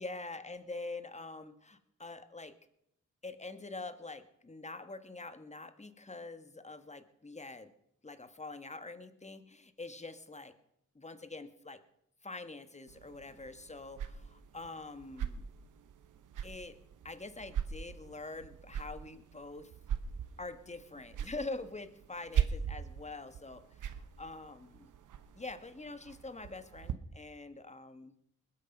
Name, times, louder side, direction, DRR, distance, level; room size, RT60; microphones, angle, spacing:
voice 1, 0.0-2.5 3.2-7.7 8.0-10.6 10.9-11.8 12.2-15.4 16.4-16.8 17.0-19.7 20.4-24.9 25.3-28.1, left 3 dB, 20° left, 11 dB, 1.5 m, -45 dB
sound 1, 12.9-26.9, right 8 dB, 80° right, 1.0 m, -40 dB
20.5 x 8.9 x 5.5 m, 0.77 s
cardioid pair, 55°, 30 cm